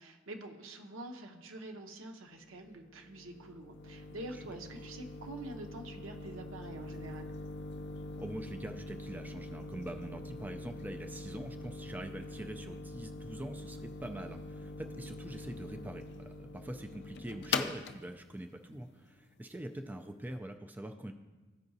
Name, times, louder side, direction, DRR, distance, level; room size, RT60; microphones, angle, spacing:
voice 1, 0.0-7.3, right 2 dB, 90° right, 5 dB, 0.8 m, -46 dB
sound 1, 2.4-20.1, left 3 dB, 60° left, 0.4 m, -43 dB
voice 2, 4.3-4.9 8.2-21.1, right 1 dB, 10° right, 5 dB, 0.3 m, -44 dB
14.0 x 4.7 x 2.7 m, 1.2 s
head